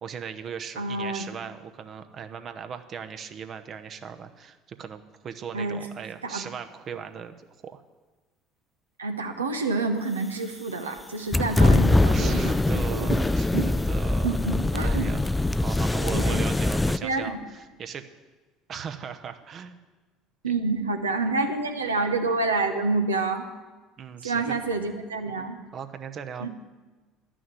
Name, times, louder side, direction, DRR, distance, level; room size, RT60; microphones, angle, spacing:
voice 1, 0.0-7.3 7.6-7.8 12.1-14.4 14.8-15.3 15.6-18.0 18.7-19.8 20.5-20.6 24.0-24.6 25.7-26.5, right 7 dB, 45° right, 8 dB, 0.9 m, -38 dB
voice 2, 0.8-1.3 5.5-5.9 6.2-6.4 9.0-13.2 13.5-13.6 14.2-15.1 16.1-16.4 17.0-17.4 20.4-23.5 24.2-25.6 26.4-26.5, right 3 dB, 85° right, 5 dB, 1.0 m, -28 dB
sound 1, 11.3-17.0, left 2 dB, 10° left, 0.4 m, -22 dB
11.0 x 6.3 x 9.2 m, 1.3 s
figure-of-eight pair, 65°, 0 cm